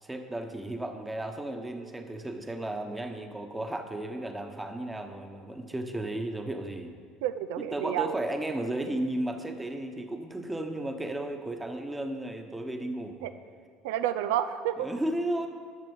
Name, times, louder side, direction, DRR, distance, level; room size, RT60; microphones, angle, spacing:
voice 1, 0.0-6.9 7.6-13.3 14.8-15.5, right 1 dB, 10° right, 5 dB, 1.1 m, -34 dB
voice 2, 7.2-8.1 13.2-13.3 13.8-14.9, right 11 dB, 90° right, 10 dB, 0.5 m, -29 dB
11.5 x 6.8 x 7.0 m, 2.1 s
supercardioid pair, 110°, 0 cm